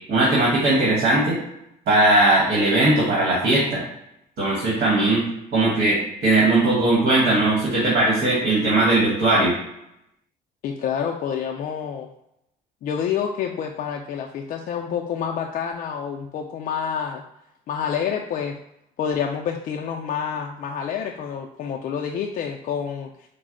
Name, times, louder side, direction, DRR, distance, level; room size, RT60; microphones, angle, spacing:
voice 1, 0.1-1.4 1.9-3.8 4.4-5.2 5.5-9.5, right 2 dB, 65° right, -5 dB, 1.2 m, -19 dB
voice 2, 10.6-12.1 12.8-17.2 17.7-18.6 19.0-23.1, left 7 dB, 50° left, 1 dB, 0.4 m, -28 dB
4.1 x 2.0 x 3.7 m, 0.82 s
cardioid pair, 110°, 17 cm